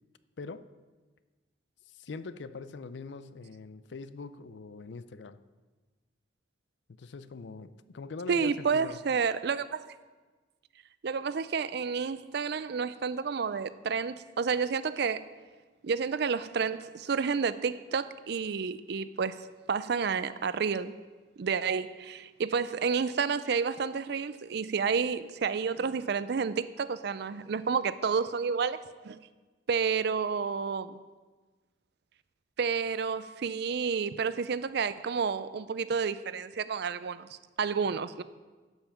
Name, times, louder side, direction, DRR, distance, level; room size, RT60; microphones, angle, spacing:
voice 1, 1.9-5.4 6.9-9.0, left 4 dB, 70° left, 0.5 m, -42 dB
voice 2, 8.3-9.8 11.0-15.2 15.8-20.9 21.4-29.2 29.7-31.0 32.6-38.2, right 5 dB, 60° right, 0.4 m, -30 dB
11.5 x 5.8 x 7.1 m
head